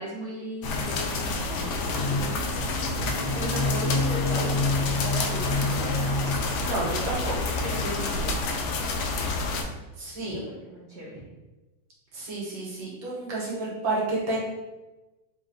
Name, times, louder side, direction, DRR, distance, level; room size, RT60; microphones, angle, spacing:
voice 1, 0.0-2.7 3.3-6.2 7.6-8.4 10.2-11.1, right 1 dB, 50° right, -5 dB, 0.9 m, -37 dB
sound 1, 0.6-9.6, left 3 dB, 85° left, 1.4 m, -27 dB
voice 2, 6.6-7.3 10.0-10.4 12.1-14.4, right 2 dB, 80° right, -5 dB, 2.0 m, -30 dB
4.3 x 3.0 x 3.7 m, 1.1 s
omnidirectional pair, 2.1 m